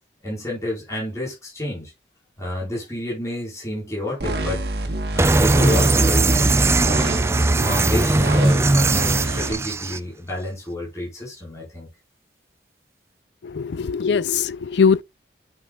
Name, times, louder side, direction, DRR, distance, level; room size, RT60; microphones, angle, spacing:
voice 1, 0.2-1.9 2.4-4.6 5.1-6.5 7.6-11.9 14.3-14.4, left 1 dB, 15° left, 4.6 m, -29 dB
sound 1, 4.2-9.5, right 1 dB, 70° right, 1.3 m, -27 dB
sound 2, 5.2-10.0, right 2 dB, 15° right, 0.3 m, -19 dB
voice 2, 13.6-15.0, left 6 dB, 85° left, 0.4 m, -20 dB
9.3 x 5.6 x 2.4 m
head